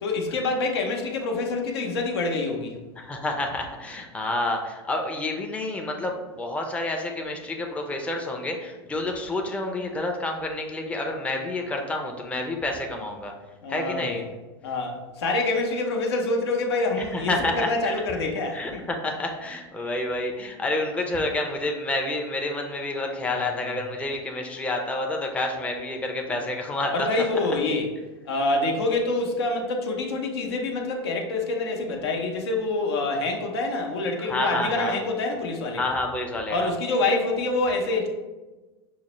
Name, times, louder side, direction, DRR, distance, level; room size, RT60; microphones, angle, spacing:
voice 1, 0.0-2.7 13.6-14.2 14.6-18.8 23.2-23.5 26.9-27.9 28.2-35.9 36.5-38.1, left 2 dB, 75° left, 2 dB, 0.7 m, -26 dB
voice 2, 3.0-13.3 13.7-14.3 17.0-17.9 18.5-27.3 34.2-35.0 35.7-36.7, left 2 dB, 10° left, 2 dB, 0.5 m, -29 dB
5.5 x 2.0 x 3.0 m, 1.2 s
hypercardioid pair, 105°, 14 cm